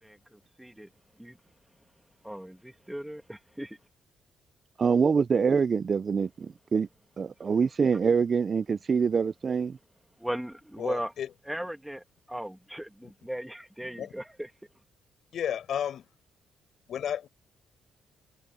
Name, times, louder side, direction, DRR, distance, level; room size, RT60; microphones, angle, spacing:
voice 1, 0.0-0.9 1.2-1.4 2.2-3.8 7.4-7.6 10.2-11.1 11.5-14.5, equal, 5° right, 1.9 m, -37 dB
voice 2, 4.8-6.9 7.2-9.8, right 5 dB, 40° right, 0.6 m, -25 dB
voice 3, 10.8-11.3 14.0-14.1 15.3-16.1 16.9-17.3, left 9 dB, 65° left, 7.0 m, -32 dB
cardioid pair, 90°, 0 cm